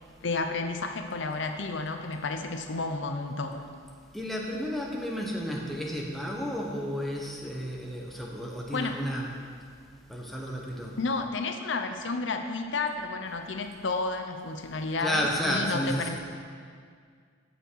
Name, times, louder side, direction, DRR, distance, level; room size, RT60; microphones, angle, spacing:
voice 1, 0.2-3.7 8.7-9.0 11.0-16.2, left 3 dB, 70° left, 6 dB, 0.7 m, -31 dB
voice 2, 4.1-9.3 10.1-10.9 15.0-16.2, equal, ahead, -2 dB, 1.1 m, -32 dB
15.0 x 5.8 x 4.7 m, 2.1 s
head